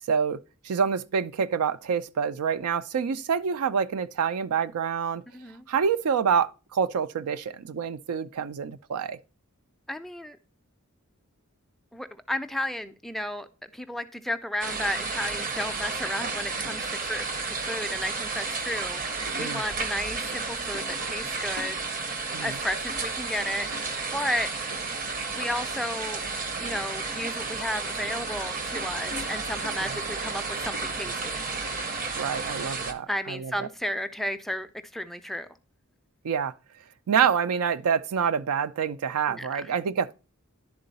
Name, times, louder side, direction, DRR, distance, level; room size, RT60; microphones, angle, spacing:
voice 1, 0.1-5.2 5.7-9.2 19.4-19.6 22.3-22.6 32.2-33.7 36.2-36.5 37.1-40.1, right 7 dB, 80° right, 0.4 m, -27 dB
voice 2, 5.3-5.6 9.9-10.4 11.9-13.5 13.7-21.8 22.4-24.5 25.3-26.2 26.6-31.4 33.1-35.5 39.3-39.7, left 1 dB, ahead, 0.3 m, -33 dB
sound 1, 14.6-32.9, right 4 dB, 40° right, 0.7 m, -32 dB
10.5 x 3.8 x 4.0 m
head